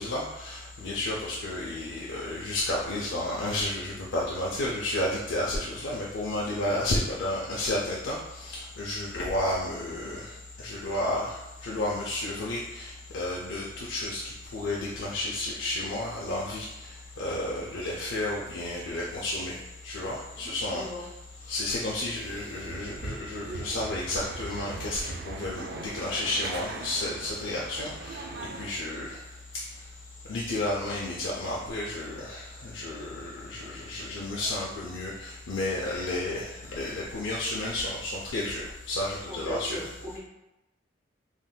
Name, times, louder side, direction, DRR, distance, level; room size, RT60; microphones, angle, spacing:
voice 1, 0.0-21.1 21.5-29.2 29.5-29.7 30.3-39.9, left 1 dB, 75° left, -4 dB, 0.4 m, -32 dB
voice 2, 20.3-21.0 39.3-40.2, equal, 50° left, -6 dB, 1.2 m, -38 dB
sound 1, 22.2-28.7, right 3 dB, 55° right, 0.3 m, -40 dB
3.5 x 2.6 x 2.2 m, 0.94 s
head